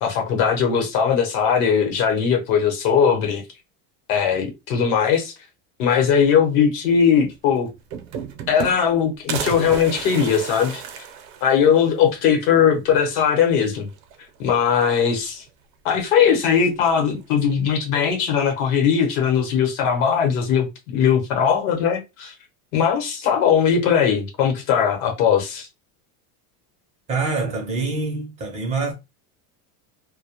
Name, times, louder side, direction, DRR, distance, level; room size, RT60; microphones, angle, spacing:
voice 1, 0.0-3.4 4.1-5.3 5.8-7.7 8.5-11.0 11.4-13.9 14.4-15.4 15.8-22.3 22.7-25.7, left 7 dB, 65° left, 0.9 m, -19 dB
sound 1, 7.3-7.4 7.7-9.0 9.3-11.9 12.3-12.4 12.7-12.8 13.9-14.4 14.7-15.5 16.5-17.1, right 7 dB, 65° right, 0.6 m, -33 dB
voice 2, 27.1-28.9, right 3 dB, 15° right, 0.4 m, -25 dB
2.1 x 2.0 x 2.8 m
cardioid pair, 170°, 44 cm